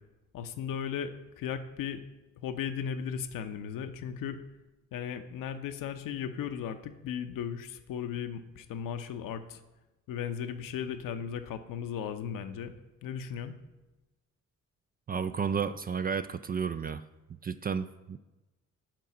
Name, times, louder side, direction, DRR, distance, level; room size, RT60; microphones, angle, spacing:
voice 1, 0.3-2.0 2.4-4.4 4.9-9.6 10.1-12.7 13.0-13.5, left 8 dB, 65° left, 8 dB, 0.8 m, -36 dB
voice 2, 15.1-17.0 17.4-18.2, right 6 dB, 25° right, 11 dB, 0.4 m, -32 dB
7.5 x 4.6 x 6.0 m, 1.1 s
hypercardioid pair, 50°, 36 cm